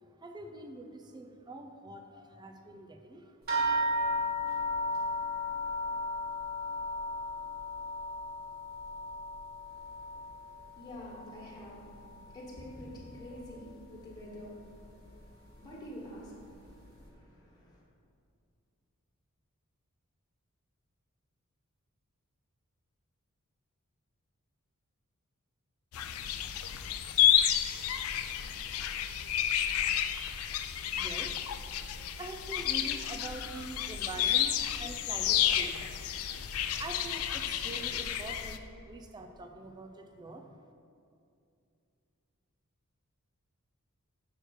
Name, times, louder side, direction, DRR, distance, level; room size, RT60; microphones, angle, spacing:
voice 1, 0.2-3.4 31.0-31.3 32.2-36.0 36.3-40.5, right 2 dB, 20° right, 5 dB, 0.4 m, -45 dB
sound 1, 3.5-12.3 12.6-13.5 14.2-14.3 14.8-14.9, left 1 dB, 45° right, 1.7 m, -35 dB
voice 2, 9.7-17.8, left 1 dB, 20° left, -7 dB, 1.6 m, -48 dB
sound 2, 25.9-38.6, left 10 dB, 70° left, 0.4 m, -31 dB
6.4 x 4.6 x 6.4 m, 2.4 s
head